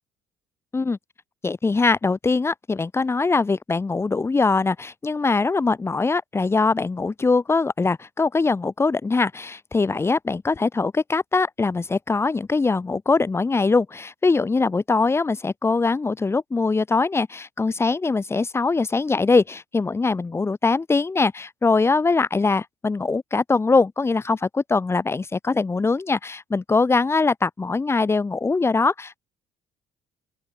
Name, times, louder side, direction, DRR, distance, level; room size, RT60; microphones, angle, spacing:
voice 1, 1.4-29.2, left 3 dB, 20° left, 3.2 m, -22 dB
open air
cardioid pair, 110°, 12 cm